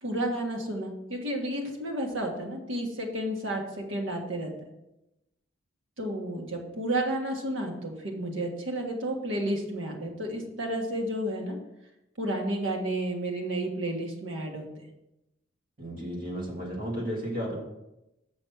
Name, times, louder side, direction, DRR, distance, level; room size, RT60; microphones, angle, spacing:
voice 1, 0.0-4.5 6.0-11.6 12.2-14.7, right 1 dB, 75° right, 1 dB, 1.5 m, -31 dB
voice 2, 15.8-17.6, equal, 45° right, -2 dB, 2.3 m, -33 dB
6.3 x 6.3 x 5.7 m, 0.93 s
head